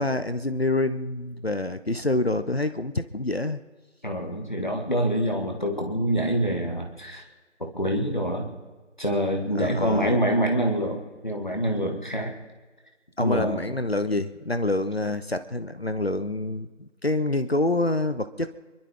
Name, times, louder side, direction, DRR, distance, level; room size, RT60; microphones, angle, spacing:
voice 1, 0.0-3.6 9.6-10.1 13.2-18.5, left 2 dB, 55° left, 11 dB, 0.9 m, -27 dB
voice 2, 4.0-7.2 7.6-8.5 9.0-12.3 13.2-13.6, equal, 40° left, 1 dB, 2.1 m, -26 dB
28.0 x 12.5 x 3.8 m, 1.3 s
figure-of-eight pair, 180°, 37 cm